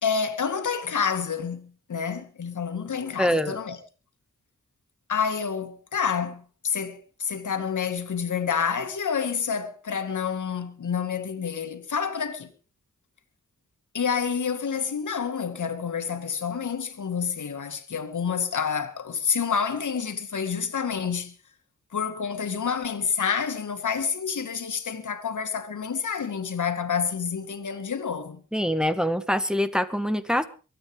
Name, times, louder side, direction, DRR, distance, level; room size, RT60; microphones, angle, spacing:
voice 1, 0.0-3.8 5.1-12.5 13.9-21.3 21.9-28.4, left 6 dB, 80° left, 2.3 m, -28 dB
voice 2, 3.2-3.6 28.5-30.4, equal, ahead, 1.8 m, -24 dB
23.5 x 9.3 x 5.1 m
cardioid pair, 45°, 30 cm